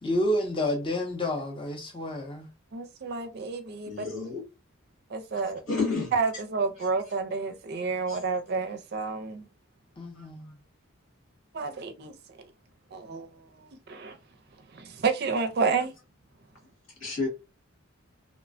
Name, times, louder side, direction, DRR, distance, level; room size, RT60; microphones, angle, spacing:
voice 1, 0.0-2.5 10.0-10.6, left 1 dB, 25° left, 0.5 m, -29 dB
voice 2, 2.7-4.0 5.1-5.6 6.1-9.4 11.5-12.1 12.9-13.3 13.6-14.2 14.7-15.9, right 4 dB, 50° right, 0.4 m, -30 dB
voice 3, 3.8-4.4 5.7-6.1 6.8-6.9 8.1-8.2 10.1-10.3 17.0-17.3, left 4 dB, 85° left, 1.6 m, -30 dB
3.0 x 2.1 x 2.5 m
head